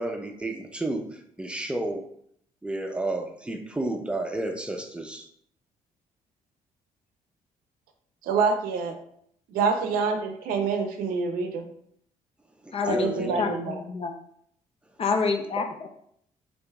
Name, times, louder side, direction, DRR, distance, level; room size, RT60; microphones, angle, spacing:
voice 1, 0.0-2.0 2.6-5.3 12.6-13.4, right 2 dB, 5° right, 0.6 m, -31 dB
voice 2, 8.2-8.9 9.5-11.6 12.8-13.7, right 5 dB, 80° right, 0.6 m, -26 dB
voice 3, 12.7-14.1 15.0-15.9, left 5 dB, 40° left, 0.5 m, -28 dB
4.5 x 2.6 x 2.3 m
supercardioid pair, 70°, 15 cm